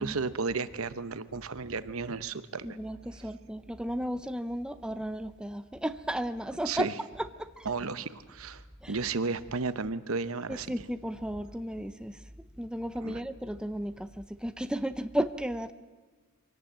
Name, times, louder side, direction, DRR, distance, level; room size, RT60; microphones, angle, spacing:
voice 1, 0.0-2.8 6.6-7.0 7.6-8.6 8.9-10.7 13.0-13.2, right 4 dB, 70° right, 13 dB, 0.9 m, -33 dB
voice 2, 2.6-6.9 7.2-7.7 8.8-9.0 10.5-12.2 12.6-15.7, equal, 5° right, 10 dB, 0.6 m, -34 dB
24.0 x 18.5 x 7.5 m, 1.3 s
head